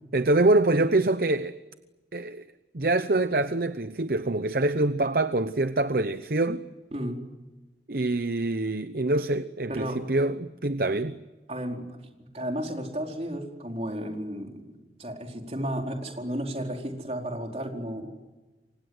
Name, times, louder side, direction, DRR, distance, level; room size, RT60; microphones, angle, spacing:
voice 1, 0.1-1.5 2.1-2.4 2.7-6.7 7.9-11.2, right 2 dB, 55° right, 0.9 m, -25 dB
voice 2, 6.9-7.2 9.7-10.0 11.5-18.3, equal, 35° right, 4.6 m, -33 dB
28.5 x 25.0 x 8.0 m
head